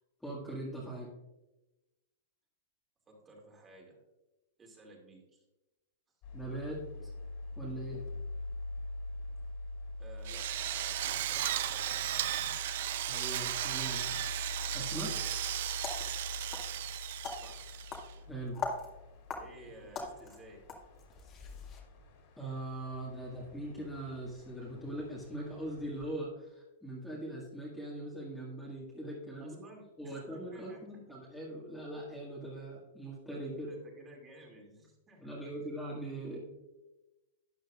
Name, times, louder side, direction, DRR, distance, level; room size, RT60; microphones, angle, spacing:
voice 1, 0.2-1.1 6.3-7.1 7.6-8.0 13.1-14.0 14.7-15.3 18.3-18.6 22.4-29.6 30.0-33.7 35.2-36.5, right 1 dB, 5° left, -6 dB, 1.9 m, -41 dB
voice 2, 3.1-4.0 4.6-5.4 10.0-12.5 17.3-17.8 19.3-20.6 29.4-30.8 33.5-35.4, right 1 dB, 20° right, 0 dB, 2.5 m, -54 dB
sound 1, 6.2-26.1, left 2 dB, 45° left, 3.4 m, -44 dB
Drill, 10.2-18.1, right 13 dB, 65° right, 0.6 m, -35 dB
sound 2, 15.6-21.8, left 4 dB, 25° left, 2.0 m, -43 dB
12.5 x 8.7 x 2.4 m, 1.0 s
hypercardioid pair, 145°, 0 cm